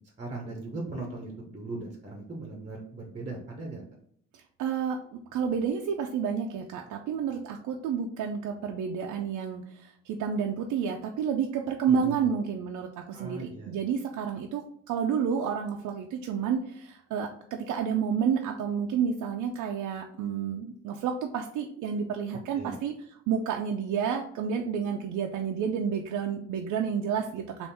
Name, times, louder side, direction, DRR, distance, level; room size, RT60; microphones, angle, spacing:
voice 1, 0.2-3.8 11.9-12.3 13.1-13.8 22.5-22.8, right 2 dB, 20° right, 0 dB, 0.9 m, -38 dB
voice 2, 4.3-22.9 23.3-27.7, right 7 dB, 80° right, 2 dB, 0.5 m, -30 dB
3.5 x 2.5 x 4.1 m, 0.66 s
cardioid pair, 90°, 30 cm